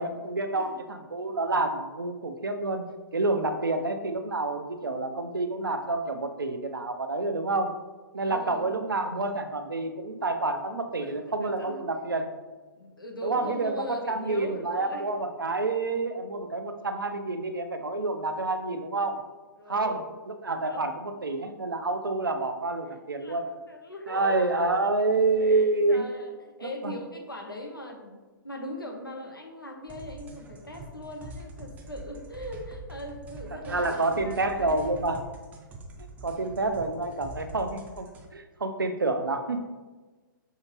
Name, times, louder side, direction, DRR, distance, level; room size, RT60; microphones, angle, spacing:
voice 1, 0.0-2.8 3.1-7.7 8.1-12.3 13.2-13.7 14.1-19.2 19.7-23.4 24.1-26.0 26.6-26.9 33.7-35.2 36.2-38.1 38.3-39.6, right 2 dB, 80° right, 7 dB, 0.5 m, -28 dB
voice 2, 8.2-8.7 10.9-11.8 12.8-15.2 19.6-20.1 20.7-20.8 23.2-24.8 25.4-28.2 28.4-35.1, equal, 85° left, 2 dB, 0.8 m, -40 dB
sound 1, 29.9-38.3, right 1 dB, 15° right, 0.4 m, -44 dB
5.6 x 2.8 x 2.9 m, 1.3 s
figure-of-eight pair, 115°, 11 cm